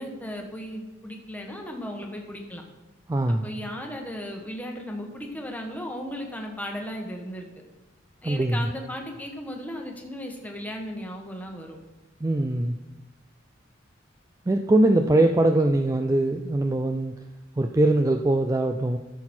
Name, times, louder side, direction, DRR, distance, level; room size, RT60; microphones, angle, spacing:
voice 1, 0.0-2.6 3.3-7.5 8.2-11.8, equal, 10° left, 2 dB, 1.3 m, -36 dB
voice 2, 3.1-3.5 8.2-8.7 12.2-12.8 14.5-17.1 17.6-19.0, right 1 dB, 15° right, 5 dB, 0.4 m, -22 dB
13.5 x 6.2 x 4.4 m, 1.1 s
head